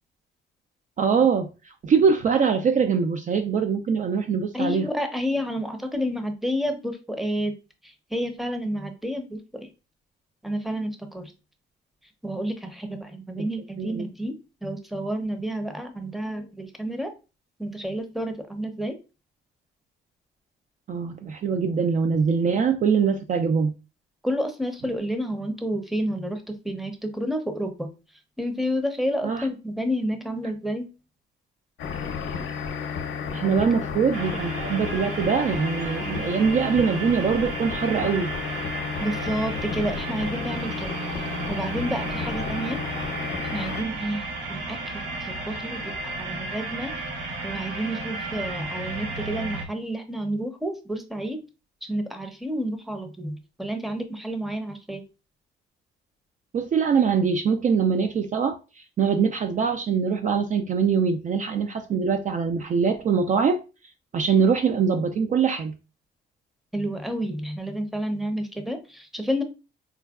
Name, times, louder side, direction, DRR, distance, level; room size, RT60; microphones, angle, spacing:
voice 1, 1.0-1.5 1.8-4.8 13.4-13.5 13.8-14.0 20.9-23.7 29.2-29.5 33.3-38.3 56.5-58.6 59.0-63.6 64.1-65.7, right 6 dB, 40° right, 0.4 m, -23 dB
voice 2, 4.5-7.5 7.8-9.7 10.4-11.3 12.2-17.1 17.6-19.0 24.2-27.9 28.4-30.9 33.4-33.7 39.0-41.0 41.5-42.8 43.5-44.2 44.5-46.9 47.4-51.4 51.9-55.0 66.7-69.4, equal, ahead, 0.6 m, -30 dB
sound 1, 31.8-43.8, left 6 dB, 75° left, 0.6 m, -33 dB
sound 2, 34.1-49.6, right 3 dB, 75° right, 1.0 m, -33 dB
4.4 x 2.2 x 2.3 m
cardioid pair, 90°, 20 cm